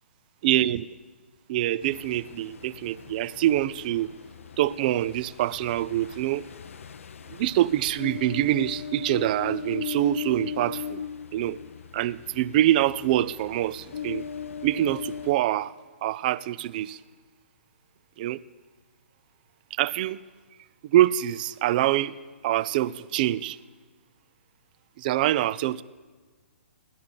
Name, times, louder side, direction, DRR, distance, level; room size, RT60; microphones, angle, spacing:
voice 1, 0.4-0.9 1.5-4.1 4.6-6.5 7.3-11.0 11.3-11.6 11.9-14.3 14.6-15.7 16.0-17.0 18.2-18.4 19.7-20.2 20.8-22.1 22.4-23.6 25.0-25.8, right 13 dB, 40° right, 18 dB, 0.4 m, -25 dB
Ocean, 1.8-15.3, left 8 dB, 75° left, 0.6 m, -38 dB
17.0 x 12.5 x 5.3 m, 1.3 s
hypercardioid pair, 140°, 7 cm